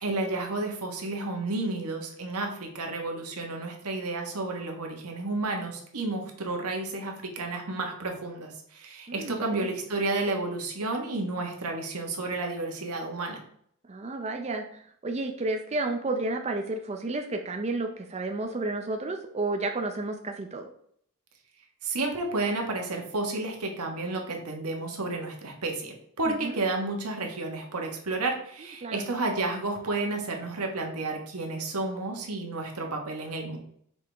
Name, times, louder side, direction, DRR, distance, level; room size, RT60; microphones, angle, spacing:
voice 1, 0.0-13.4 21.8-33.6, right 2 dB, 85° right, 2 dB, 1.5 m, -31 dB
voice 2, 9.1-9.7 13.9-20.7 26.3-26.6 28.8-29.0, right 2 dB, 30° right, 4 dB, 0.5 m, -31 dB
6.2 x 4.8 x 3.4 m, 0.65 s
head